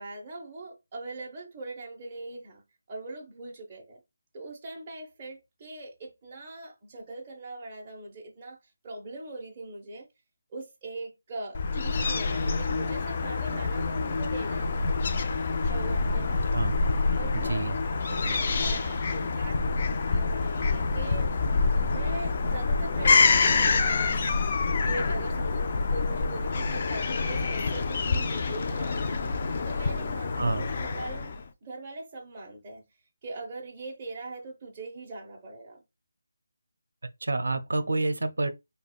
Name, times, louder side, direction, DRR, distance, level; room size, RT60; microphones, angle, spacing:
voice 1, 0.0-2.6 2.9-4.0 4.3-8.6 8.8-10.1 10.5-14.9 15.6-16.6 17.2-17.8 18.1-19.6 20.0-21.3 21.9-24.3 24.8-29.3 29.7-31.3 31.6-32.8 33.2-35.8, right 2 dB, 20° right, 0.7 m, -41 dB
Fowl / Gull seagull, 11.5-31.4, left 4 dB, 30° left, 0.3 m, -27 dB
voice 2, 17.4-17.8 30.4-30.7 37.2-38.5, right 2 dB, 80° right, 0.5 m, -28 dB
5.1 x 2.2 x 2.3 m
figure-of-eight pair, 175°, 0 cm